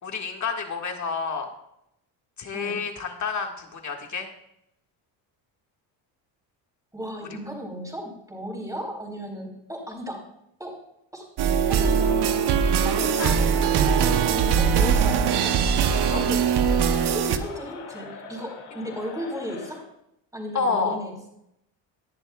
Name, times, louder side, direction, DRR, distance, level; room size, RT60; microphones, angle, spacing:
voice 1, 0.0-1.5 2.4-4.3 13.2-13.3 16.1-16.2 20.5-21.0, left 5 dB, 40° left, 3 dB, 1.9 m, -29 dB
voice 2, 6.9-10.3 10.6-10.8 11.1-11.2 11.7-12.2 12.8-15.6 16.0-16.5 17.0-19.8 20.3-21.1, equal, 5° right, 0 dB, 4.2 m, -35 dB
sound 1, 11.4-17.4, right 7 dB, 60° right, 0.9 m, -21 dB
Crowd, 11.8-19.9, left 4 dB, 90° left, 2.4 m, -41 dB
18.5 x 10.5 x 2.4 m, 0.80 s
cardioid pair, 90°, 45 cm